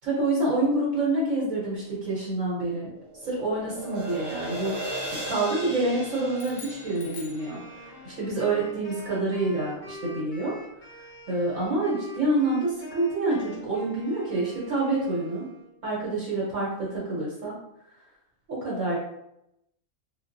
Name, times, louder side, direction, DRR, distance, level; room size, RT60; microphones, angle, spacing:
voice 1, 0.0-2.9 3.2-7.6 8.0-10.6 11.3-15.5 15.8-17.6 18.5-19.0, right 2 dB, 70° right, -7 dB, 1.4 m, -27 dB
sound 1, 2.5-8.7, right 1 dB, 45° right, 1.1 m, -37 dB
sound 2, 6.3-8.1, left 6 dB, 85° left, 1.1 m, -46 dB
Wind instrument woodwind instrument, 7.4-15.8, left 1 dB, 50° left, 0.9 m, -45 dB
3.8 x 2.3 x 2.6 m, 0.82 s
omnidirectional pair, 1.4 m